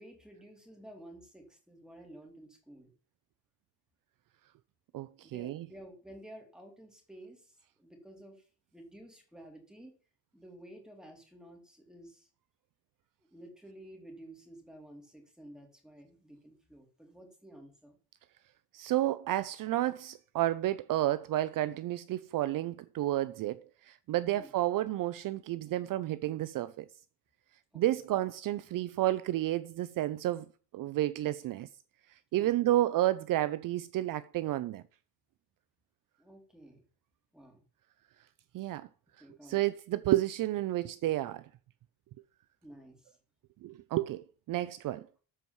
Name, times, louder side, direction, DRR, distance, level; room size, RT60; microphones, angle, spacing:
voice 1, 0.0-2.9 5.2-8.4 8.7-9.9 10.3-12.3 13.3-18.0 24.3-24.5 27.7-28.1 32.4-32.7 36.2-36.9 37.3-37.6 39.2-39.6 42.6-43.2, right 1 dB, ahead, 2.8 m, -52 dB
voice 2, 4.9-5.6 18.7-26.9 27.7-30.5 30.7-31.7 32.3-34.8 38.5-38.9 39.4-41.4 43.6-45.1, right 14 dB, 55° right, 0.6 m, -31 dB
13.5 x 4.7 x 7.1 m
cardioid pair, 155°, 40 cm